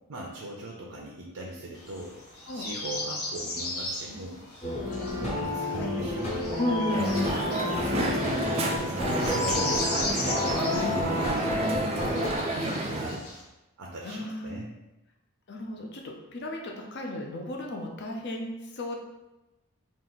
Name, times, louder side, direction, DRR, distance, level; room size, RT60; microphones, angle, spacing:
voice 1, 0.1-2.2 2.5-4.4 5.2-6.7 7.8-9.9 10.3-13.2 13.8-14.7, right 1 dB, 75° right, -2 dB, 0.6 m, -40 dB
sound 1, 1.7-13.4, left 2 dB, 80° left, 0.9 m, -37 dB
sound 2, 4.6-12.4, left 1 dB, 30° left, 0.9 m, -31 dB
voice 2, 4.9-5.9 6.6-7.3 7.9-8.2 10.7-10.9 14.0-14.6 15.5-19.0, left 1 dB, 50° left, 1 dB, 0.6 m, -34 dB
Crowd, 6.9-13.2, right 1 dB, 30° right, 0.4 m, -30 dB
3.7 x 2.5 x 3.9 m, 0.99 s
head